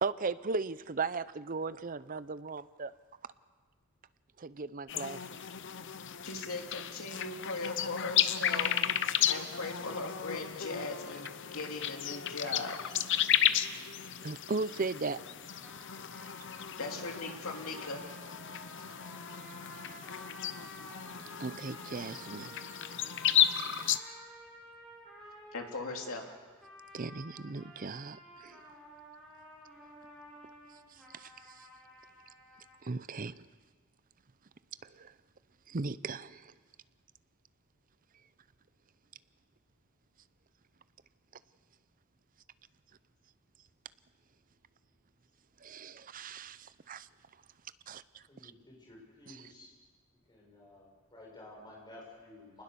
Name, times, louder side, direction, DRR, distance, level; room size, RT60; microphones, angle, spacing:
voice 1, 0.0-2.9 4.4-5.3 14.2-15.2 21.4-22.6 26.9-28.6 31.1-31.3 32.8-33.5 35.0-35.1 35.7-36.5 45.6-47.1 47.9-48.0 48.4-48.5 49.3-49.4, right 4 dB, 40° right, 16 dB, 0.6 m, -37 dB
sound 1, 4.9-24.0, left 10 dB, 55° left, 0.8 m, -33 dB
voice 2, 6.2-8.7 9.3-12.9 16.8-18.0 25.5-26.2, left 3 dB, 70° left, 2 dB, 3.0 m, -39 dB
sound 2, 15.6-32.8, equal, ahead, 6.1 m, -52 dB
voice 3, 48.3-49.7 50.3-52.6, left 2 dB, 20° left, -2 dB, 6.8 m, -53 dB
26.5 x 20.0 x 6.9 m, 1.5 s
head